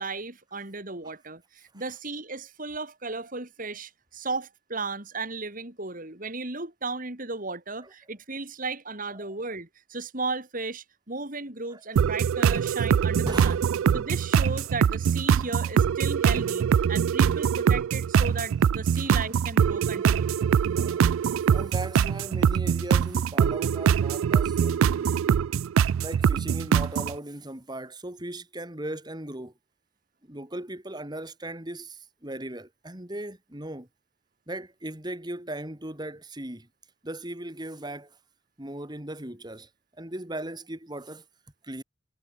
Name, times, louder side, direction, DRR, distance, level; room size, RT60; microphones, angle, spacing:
voice 1, 0.0-13.6 13.9-20.3, right 3 dB, 45° right, 3.5 m, -35 dB
sound 1, 12.0-27.1, right 7 dB, 85° right, 0.3 m, -23 dB
voice 2, 13.2-13.6 19.9-20.1 20.7-21.1 21.5-25.1 26.0-29.5 30.2-33.9 34.5-36.7 37.0-38.2 38.6-39.7 40.0-41.2 41.6-41.8, right 1 dB, 20° right, 2.6 m, -38 dB
head